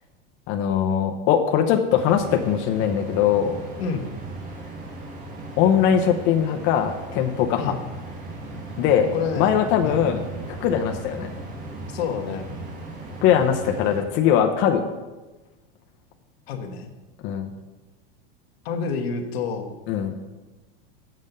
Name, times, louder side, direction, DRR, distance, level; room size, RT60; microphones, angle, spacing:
voice 1, 0.5-3.6 5.6-7.7 8.8-9.1 9.4-10.2 10.5-11.3 13.2-14.8 17.2-17.5 19.9-20.1, left 9 dB, 40° left, 4 dB, 0.7 m, -21 dB
sound 1, 1.9-14.0, right 2 dB, 25° right, 1.7 m, -37 dB
voice 2, 9.1-10.0 11.9-12.5 16.5-16.9 18.6-19.8, left 5 dB, 85° left, 4 dB, 1.3 m, -29 dB
7.5 x 5.2 x 6.7 m, 1.2 s
supercardioid pair, 150°, 30 cm